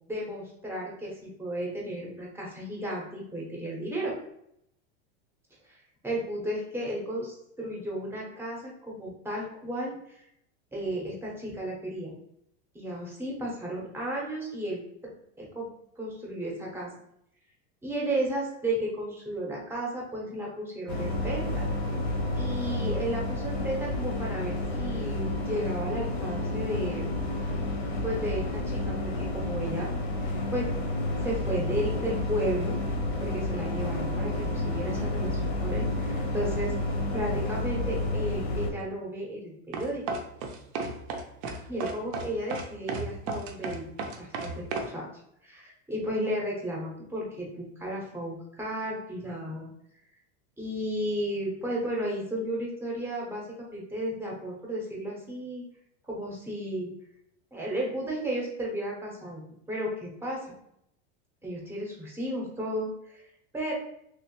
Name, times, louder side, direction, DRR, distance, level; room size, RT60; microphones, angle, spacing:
voice 1, 0.1-4.1 6.0-10.2 10.7-12.1 12.7-15.1 15.4-15.7 16.0-16.9 17.8-21.6 22.4-27.1 28.0-29.9 30.2-30.7 31.2-32.8 33.2-36.8 37.1-40.0 41.7-43.8 44.2-45.1 45.4-49.7 50.6-53.5 53.7-55.6 56.0-56.9 57.5-59.4 59.7-60.4 61.4-63.2 63.5-63.7, right 1 dB, 5° right, -3 dB, 0.7 m, -33 dB
sound 1, 20.9-38.7, left 2 dB, 80° left, 1.0 m, -30 dB
sound 2, 39.7-44.9, right 3 dB, 45° right, 0.5 m, -33 dB
3.1 x 3.0 x 2.9 m, 0.75 s
supercardioid pair, 155°, 32 cm